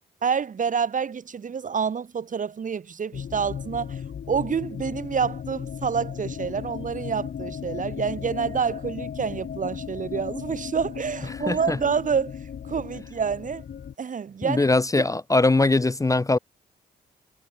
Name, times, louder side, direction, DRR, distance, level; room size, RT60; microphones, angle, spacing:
voice 1, 0.0-4.0 4.3-12.3 12.6-13.6 14.0-14.6, right 6 dB, 45° right, 0.9 m, -28 dB
sound 1, 3.1-13.9, left 8 dB, 60° left, 2.4 m, -36 dB
voice 2, 11.5-11.8 14.4-16.4, left 2 dB, 15° left, 0.6 m, -21 dB
cardioid pair, 65°, 19 cm